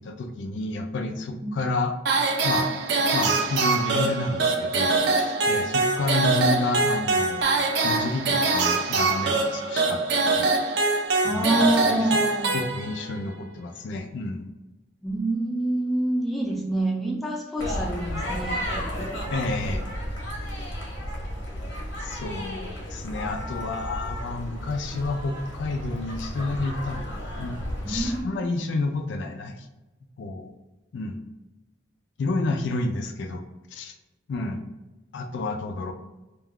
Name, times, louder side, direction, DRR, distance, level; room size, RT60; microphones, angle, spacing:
voice 1, 0.0-2.0 2.4-2.7 3.1-7.5 7.8-10.6 11.3-12.1 12.5-14.5 19.3-19.8 22.0-29.7 30.2-30.5 30.9-31.2 32.2-33.4 33.7-34.0 34.3-34.6 35.1-35.9, left 2 dB, 70° left, 4 dB, 0.3 m, -30 dB
sound 1, 2.1-13.2, right 3 dB, 60° right, 0.4 m, -24 dB
voice 2, 11.2-12.5 15.0-18.7 27.8-28.6, right 1 dB, ahead, -3 dB, 0.4 m, -27 dB
sound 2, 17.6-28.2, equal, 90° left, 0.9 m, -33 dB
2.4 x 2.2 x 3.5 m, 1.1 s
head